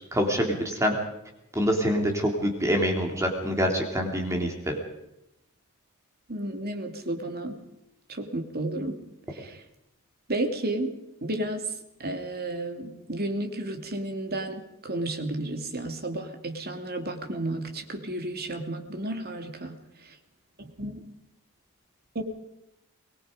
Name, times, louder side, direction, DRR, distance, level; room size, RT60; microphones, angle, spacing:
voice 1, 0.1-1.0 1.5-4.7, equal, 15° right, 2 dB, 3.0 m, -25 dB
voice 2, 6.3-7.6 8.1-9.0 9.3-9.6 10.3-10.9 11.2-11.7 12.0-19.8 20.0-20.2 20.6-21.0 22.1-22.2, right 1 dB, 45° right, 5 dB, 2.9 m, -32 dB
24.5 x 20.5 x 5.2 m, 0.88 s
head